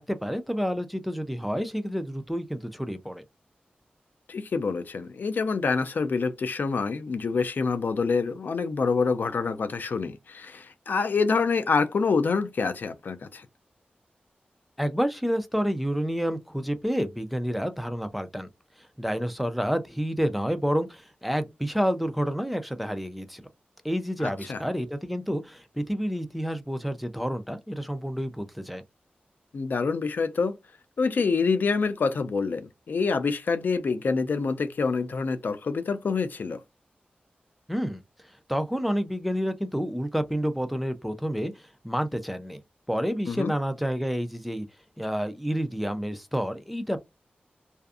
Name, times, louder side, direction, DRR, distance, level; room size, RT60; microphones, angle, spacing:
voice 1, 0.0-3.2 14.8-18.5 19.0-23.5 23.8-28.8 37.7-38.0 38.5-41.5 41.8-42.6 42.9-44.7 45.0-47.0, equal, ahead, 0.4 m, -29 dB
voice 2, 4.3-13.5 24.2-24.6 29.5-30.6 31.0-36.6 43.3-43.5, left 4 dB, 70° left, 0.4 m, -26 dB
2.5 x 2.4 x 2.3 m
wide cardioid pair, 95°, 3 cm